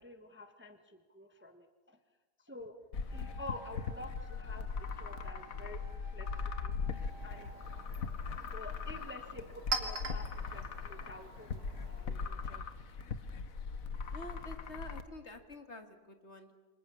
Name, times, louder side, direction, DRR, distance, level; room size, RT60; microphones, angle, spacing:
voice 1, 0.0-2.0 2.4-2.7 3.1-5.8 6.1-6.3 6.6-6.8 7.2-7.5 8.4-12.6, left 2 dB, 5° right, 6 dB, 1.3 m, -49 dB
sound 1, 2.9-15.0, left 5 dB, 60° left, 1.6 m, -40 dB
Wind instrument woodwind instrument, 3.1-7.9, right 1 dB, 80° left, 4.3 m, -56 dB
Chink clink, 6.8-12.3, right 4 dB, 65° right, 3.4 m, -44 dB
voice 2, 14.1-16.5, left 1 dB, 45° left, 6 dB, 2.1 m, -48 dB
28.5 x 26.0 x 7.0 m, 1.3 s
omnidirectional pair, 1.8 m